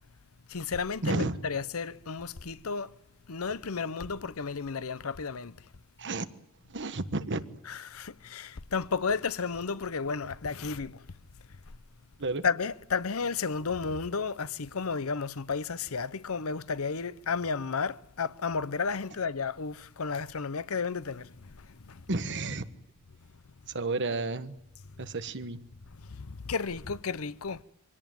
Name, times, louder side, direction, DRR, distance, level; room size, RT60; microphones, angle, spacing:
voice 1, 0.5-2.9 3.3-5.7 7.7-11.0 12.4-22.0 26.0-27.6, left 5 dB, 80° left, 0.8 m, -33 dB
voice 2, 1.0-1.4 6.0-6.3 6.7-7.4 12.2-12.4 22.1-22.6 23.7-24.6 25.0-25.6, right 3 dB, 60° right, 1.4 m, -31 dB
24.5 x 17.5 x 9.3 m
head